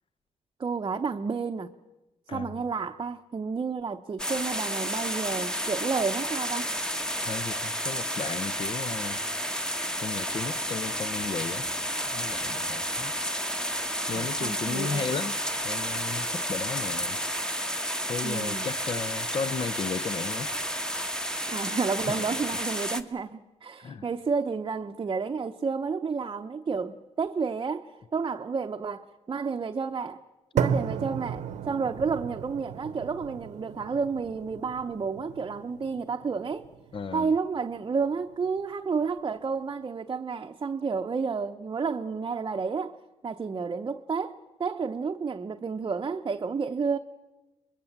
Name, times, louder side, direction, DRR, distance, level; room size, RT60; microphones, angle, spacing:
voice 1, 0.6-1.7 2.3-6.7 14.1-15.1 18.2-18.7 21.5-30.2 30.5-36.7 37.1-43.0 43.2-47.0, right 5 dB, 35° right, 0.8 m, -31 dB
voice 2, 2.3-2.6 7.3-9.2 10.0-11.7 12.1-13.1 14.1-15.4 15.6-17.2 18.1-20.5 22.1-22.4 23.8-24.1 36.9-37.3, left 5 dB, 45° left, 1.0 m, -35 dB
sound 1, 4.2-23.0, equal, 5° left, 1.3 m, -31 dB
sound 2, 30.6-38.6, right 8 dB, 75° right, 1.0 m, -35 dB
24.0 x 21.5 x 7.3 m
cardioid pair, 80°, 12 cm